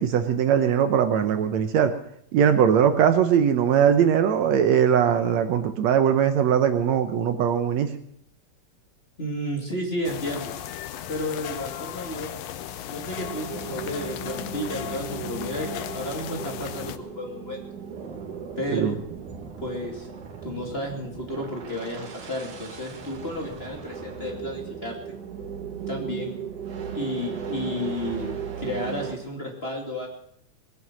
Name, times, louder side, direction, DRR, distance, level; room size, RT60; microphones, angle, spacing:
voice 1, 0.0-1.9 2.3-7.9 18.7-18.9, right 8 dB, 70° right, 9 dB, 2.0 m, -20 dB
voice 2, 9.2-10.5 11.1-12.3 12.8-17.6 18.6-19.0 19.6-20.1 20.4-25.0 25.9-26.4 26.9-30.1, left 1 dB, 20° left, 0 dB, 2.5 m, -32 dB
sound 1, 10.1-17.0, left 11 dB, 75° left, 1.8 m, -36 dB
sound 2, 13.2-29.2, right 7 dB, 85° right, 3.6 m, -37 dB
20.5 x 9.5 x 7.4 m, 0.67 s
omnidirectional pair, 3.4 m